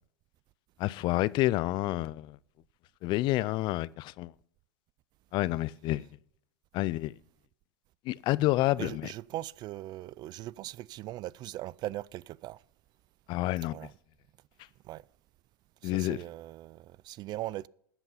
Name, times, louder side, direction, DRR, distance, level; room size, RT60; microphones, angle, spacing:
voice 1, 0.8-2.4 3.0-4.3 5.3-6.1 6.7-7.1 8.1-9.1 13.3-13.8 15.8-16.2, left 17 dB, 45° left, 0.4 m, -29 dB
voice 2, 8.8-12.6 13.7-13.9 14.9-15.0 15.8-17.7, right 15 dB, 40° right, 0.3 m, -39 dB
12.5 x 8.1 x 5.6 m
hypercardioid pair, 100°, 11 cm